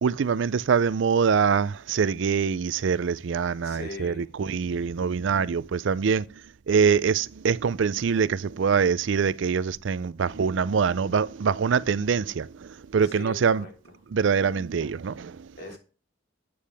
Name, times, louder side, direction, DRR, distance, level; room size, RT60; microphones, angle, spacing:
voice 1, 0.0-6.3 6.7-13.7 14.1-15.5, right 6 dB, 65° right, 0.4 m, -24 dB
voice 2, 3.6-4.3 13.0-13.7 15.6-15.8, left 1 dB, 55° left, 3.7 m, -40 dB
13.0 x 8.6 x 3.4 m
head